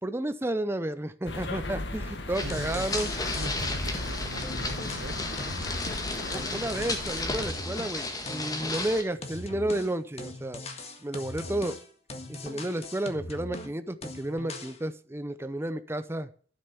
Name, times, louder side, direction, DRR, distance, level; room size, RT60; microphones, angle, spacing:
voice 1, 0.0-3.1 6.3-10.6 11.0-11.8 12.3-16.3, right 1 dB, 15° right, 0.6 m, -32 dB
sound 1, 1.3-7.5, left 2 dB, 80° left, 1.7 m, -36 dB
sound 2, 2.3-9.0, left 2 dB, 20° left, 1.7 m, -34 dB
voice 2, 2.4-3.0 3.3-5.4, right 2 dB, 90° right, 1.0 m, -41 dB
sound 3, 2.5-4.1 4.4-8.0 8.3-13.8 14.0-14.8, left 2 dB, 35° left, 1.7 m, -40 dB
12.0 x 6.8 x 7.0 m
head